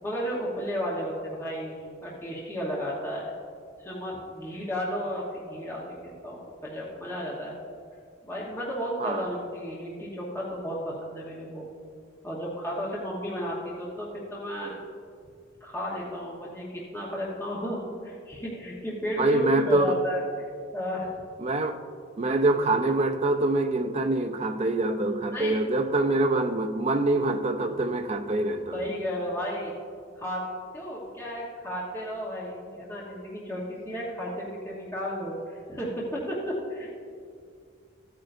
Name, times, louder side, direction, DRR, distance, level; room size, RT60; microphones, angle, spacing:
voice 1, 0.0-3.3 3.8-7.5 8.2-11.6 12.2-14.8 15.6-20.2 20.7-21.2 25.3-25.6 28.7-29.7 30.1-30.4 30.7-36.9, equal, 10° left, -5 dB, 1.1 m, -33 dB
voice 2, 19.2-19.9 21.4-21.8 22.2-28.9, right 2 dB, 30° right, 7 dB, 0.4 m, -25 dB
14.5 x 8.8 x 2.6 m, 2.2 s
head